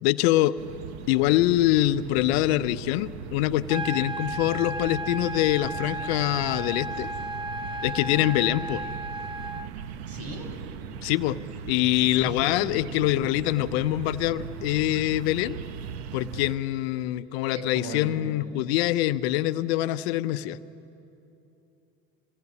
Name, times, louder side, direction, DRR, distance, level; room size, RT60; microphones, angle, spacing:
voice 1, 0.0-0.5 1.1-7.1 7.8-8.8 11.0-11.4 11.7-15.6 16.1-20.6, left 15 dB, 80° left, 14 dB, 0.7 m, -24 dB
sound 1, 0.6-16.6, right 7 dB, 85° right, 0.9 m, -39 dB
sound 2, 3.7-9.7, right 1 dB, 15° right, 0.9 m, -34 dB
voice 2, 10.0-10.5 12.1-12.7 17.5-18.3, right 1 dB, 50° right, 4 dB, 5.8 m, -37 dB
26.5 x 17.5 x 9.6 m, 2.9 s
hypercardioid pair, 80°, 31 cm